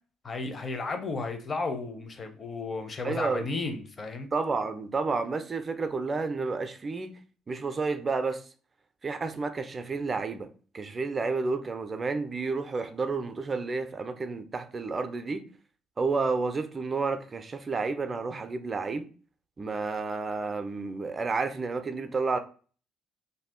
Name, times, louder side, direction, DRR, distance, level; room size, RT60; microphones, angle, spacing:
voice 1, 0.2-4.3, left 3 dB, 35° left, 0.6 m, -33 dB
voice 2, 3.0-3.5 4.3-7.2 7.5-8.5 9.0-15.5 16.0-19.1 19.6-22.4, right 4 dB, 30° right, 0.4 m, -31 dB
2.6 x 2.3 x 3.5 m
figure-of-eight pair, 50°, 0 cm